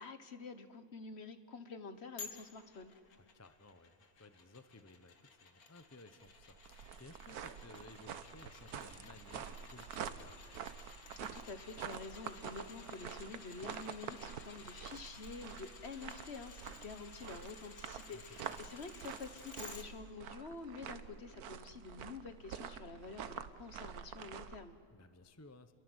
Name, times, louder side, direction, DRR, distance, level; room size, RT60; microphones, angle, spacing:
voice 1, 0.0-2.9 11.1-24.8, left 4 dB, 45° left, 10 dB, 1.5 m, -48 dB
sound 1, 2.2-19.9 20.3-20.4, left 4 dB, 65° left, 2.4 m, -55 dB
voice 2, 3.1-10.5 18.1-18.2 18.5-18.6 24.9-25.7, left 2 dB, 15° left, 10 dB, 0.7 m, -58 dB
sound 2, 6.3-24.6, right 8 dB, 70° right, 1.4 m, -47 dB
30.0 x 22.0 x 8.1 m, 2.2 s
omnidirectional pair, 1.7 m